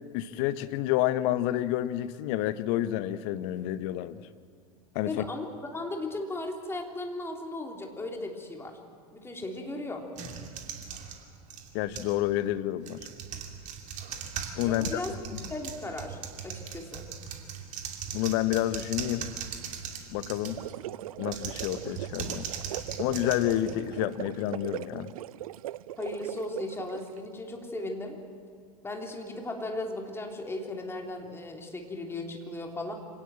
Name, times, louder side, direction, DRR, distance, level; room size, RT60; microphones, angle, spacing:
voice 1, 0.1-4.3 4.9-5.3 11.7-13.0 14.6-15.4 18.1-19.3 20.1-20.6 21.2-22.5 23.0-25.1, left 13 dB, 50° left, 14 dB, 1.0 m, -29 dB
voice 2, 5.0-5.5 5.7-8.8 9.1-10.1 14.6-15.1 15.5-16.2 16.4-17.1 26.0-28.2 28.8-32.9, left 2 dB, 10° left, 2 dB, 3.3 m, -36 dB
sound 1, 10.1-12.2 12.8-20.7 21.2-24.2, right 7 dB, 40° right, 2.6 m, -39 dB
sound 2, 20.4-27.2, right 14 dB, 65° right, 0.5 m, -39 dB
25.5 x 18.0 x 7.6 m, 2.2 s
figure-of-eight pair, 80°, 20 cm